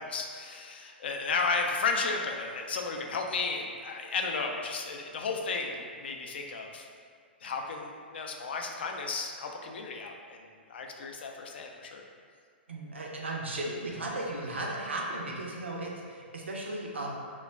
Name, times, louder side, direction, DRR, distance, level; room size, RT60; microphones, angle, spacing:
voice 1, 0.0-6.9 7.4-10.4 10.7-12.0, left 4 dB, 65° left, 2 dB, 0.3 m, -33 dB
voice 2, 12.7-17.1, right 2 dB, 80° right, -2 dB, 0.5 m, -36 dB
2.2 x 2.0 x 3.3 m, 2.1 s
figure-of-eight pair, 115°, 6 cm